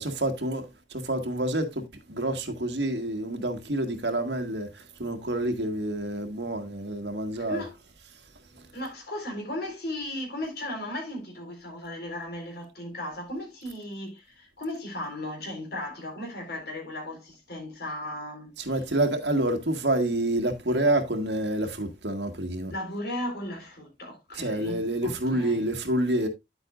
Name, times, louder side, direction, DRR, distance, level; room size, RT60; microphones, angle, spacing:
voice 1, 0.0-7.6 8.5-8.7 18.6-22.7 24.3-26.3, right 1 dB, 70° right, 1.7 m, -28 dB
voice 2, 8.7-18.7 22.7-25.6, left 1 dB, 65° left, 4.0 m, -36 dB
10.0 x 8.0 x 2.5 m
head